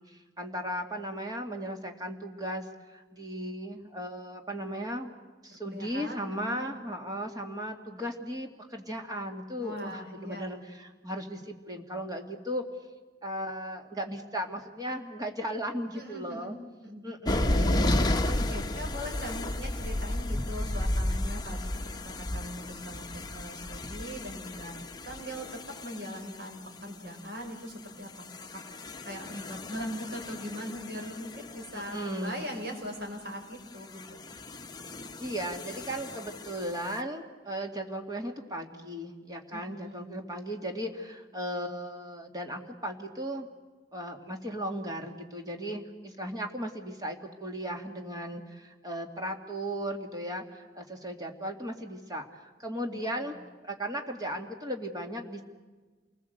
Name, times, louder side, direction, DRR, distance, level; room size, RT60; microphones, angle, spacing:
voice 1, 0.1-5.1 5.4-12.6 13.2-16.6 17.0-18.1 31.7-32.5 35.2-43.5 43.9-53.4 53.6-55.4, equal, 20° right, 2 dB, 2.5 m, -36 dB
voice 2, 5.6-6.7 9.6-10.5 15.9-16.6 16.8-17.3 17.8-17.9 18.2-34.2 39.5-40.1 52.9-53.3, equal, 65° right, 0 dB, 6.5 m, -41 dB
sound 1, 17.2-26.8 27.9-32.6 33.8-37.0, left 1 dB, 25° left, 1.0 m, -33 dB
28.5 x 20.5 x 8.1 m, 1.3 s
head